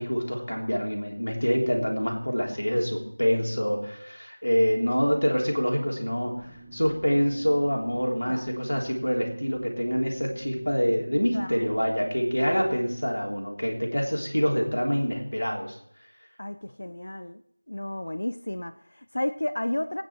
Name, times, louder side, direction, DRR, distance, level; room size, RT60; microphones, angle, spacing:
voice 1, 0.0-6.5 6.7-15.8, equal, 70° left, 0 dB, 3.4 m, -26 dB
sound 1, 6.4-12.8, right 3 dB, 5° right, 0.7 m, -46 dB
voice 2, 16.4-17.4 17.7-20.0, left 1 dB, 50° left, 11 dB, 0.6 m, -32 dB
18.5 x 9.3 x 4.5 m, 0.69 s
figure-of-eight pair, 175°, 0 cm